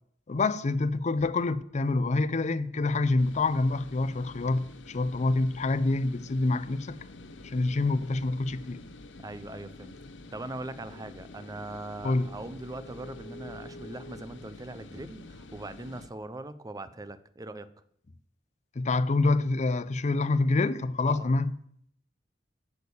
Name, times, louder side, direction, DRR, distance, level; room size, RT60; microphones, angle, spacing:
voice 1, 0.3-7.0 7.4-8.8 12.0-12.3 18.8-21.5, left 3 dB, 40° left, 0.5 m, -27 dB
sound 1, 3.2-16.1, left 2 dB, 75° left, 0.8 m, -47 dB
voice 2, 9.2-9.9 10.3-17.7 21.0-21.3, right 2 dB, 20° right, 0.5 m, -41 dB
8.1 x 6.6 x 7.0 m
head